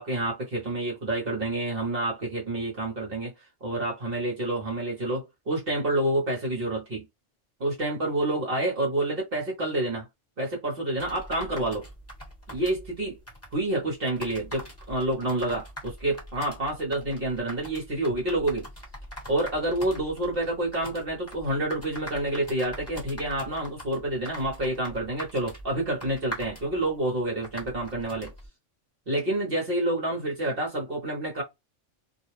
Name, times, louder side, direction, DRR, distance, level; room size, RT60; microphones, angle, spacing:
voice 1, 0.0-3.3 3.6-7.1 7.6-10.1 10.4-11.8 12.5-13.2 13.5-18.7 19.3-28.3 29.1-31.4, right 1 dB, 50° right, 1.1 m, -28 dB
sound 1, 11.0-28.5, equal, 10° left, 1.2 m, -43 dB
2.5 x 2.2 x 3.0 m
omnidirectional pair, 1.3 m